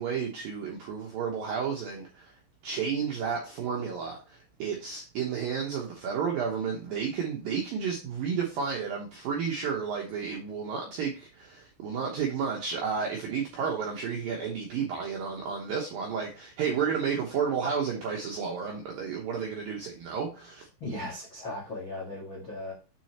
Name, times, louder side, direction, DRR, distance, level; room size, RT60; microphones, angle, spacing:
voice 1, 0.0-2.3 2.6-20.7, right 6 dB, 75° right, 2.1 m, -32 dB
voice 2, 20.8-22.7, left 2 dB, 65° left, 1.2 m, -37 dB
7.5 x 6.3 x 2.9 m
omnidirectional pair, 5.6 m